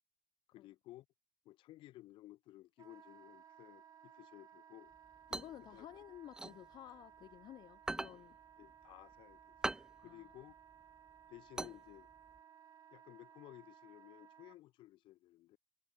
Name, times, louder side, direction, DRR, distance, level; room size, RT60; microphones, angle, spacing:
voice 1, 0.5-1.1 1.4-4.9 5.7-5.9 8.6-9.6 10.0-10.5 11.3-12.1 12.9-15.6, left 16 dB, 70° left, 2.4 m, -56 dB
Wind instrument woodwind instrument, 2.8-14.6, right 9 dB, 40° right, 3.1 m, -61 dB
sound 1, 4.9-7.4 7.7-12.4, right 2 dB, 10° right, 0.4 m, -43 dB
voice 2, 5.3-8.4 10.0-10.3, left 13 dB, 55° left, 0.7 m, -53 dB
cardioid pair, 160°, 9 cm